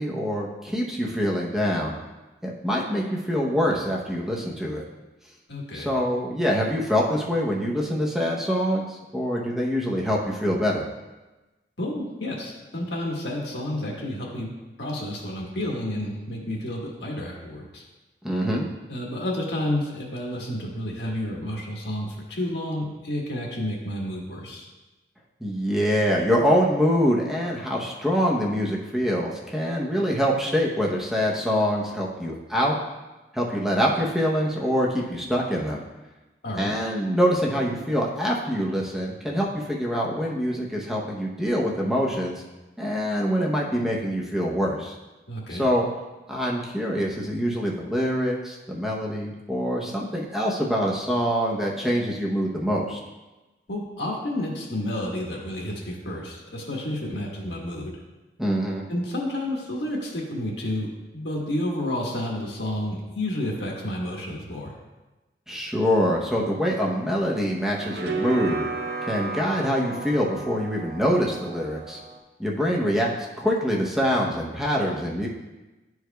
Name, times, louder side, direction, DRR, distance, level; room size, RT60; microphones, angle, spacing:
voice 1, 0.0-1.9 2.4-4.8 5.7-10.9 18.2-18.7 25.4-32.8 33.3-35.8 36.6-42.4 42.8-45.0 45.5-45.9 46.3-53.0 58.4-58.8 65.5-68.6 69.0-72.0 72.4-75.3, equal, ahead, -3 dB, 0.7 m, -25 dB
voice 2, 5.5-5.9 11.8-14.5 14.8-17.8 18.9-24.6 36.4-36.7 45.3-45.6 53.7-57.9 58.9-60.9 61.1-64.7, left 1 dB, 90° left, -2 dB, 1.5 m, -30 dB
sound 1, 66.6-72.2, right 3 dB, 70° right, 0.6 m, -34 dB
11.5 x 4.7 x 2.3 m, 1.1 s
head